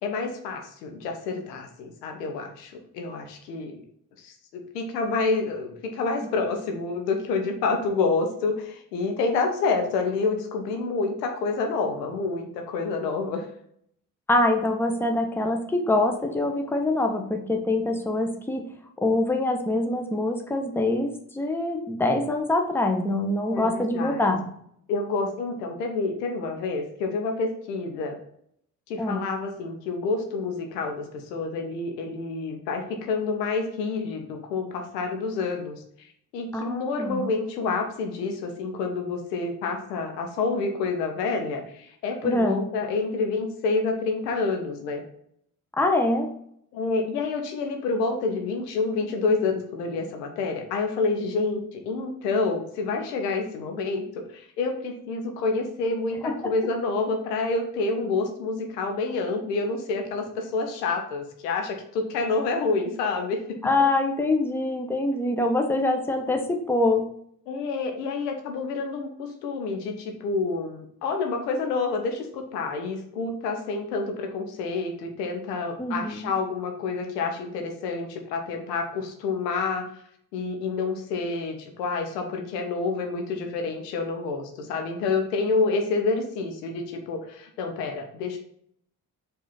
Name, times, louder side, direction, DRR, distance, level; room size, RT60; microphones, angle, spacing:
voice 1, 0.0-3.8 4.2-13.5 23.5-24.3 24.9-28.2 28.9-35.8 36.3-45.0 46.7-54.0 54.3-63.4 67.5-79.8 80.3-88.4, left 4 dB, 80° left, 4 dB, 0.8 m, -28 dB
voice 2, 14.3-18.6 19.0-24.4 29.0-29.2 36.5-37.2 42.2-42.6 45.8-46.3 56.2-56.5 63.6-67.0 75.8-76.3, left 2 dB, 5° left, 3 dB, 0.7 m, -24 dB
4.8 x 2.7 x 4.0 m, 0.68 s
figure-of-eight pair, 40°, 48 cm